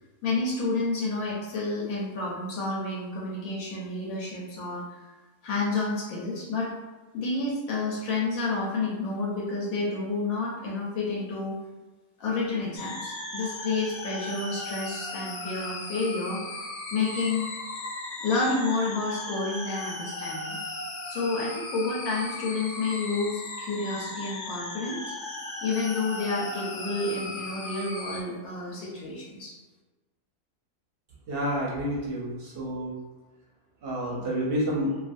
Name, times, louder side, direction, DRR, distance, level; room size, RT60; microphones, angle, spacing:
voice 1, 0.2-4.8 5.4-6.7 7.1-11.5 12.2-16.4 16.9-17.5 18.2-20.6 21.0-25.1 25.6-29.5, left 3 dB, 85° left, -4 dB, 1.1 m, -30 dB
sound 1, 12.8-28.2, left 2 dB, 65° left, 0.9 m, -37 dB
voice 2, 31.3-32.9 33.8-34.9, equal, 55° right, -4 dB, 0.7 m, -29 dB
2.4 x 2.4 x 2.5 m, 1.2 s
omnidirectional pair, 1.4 m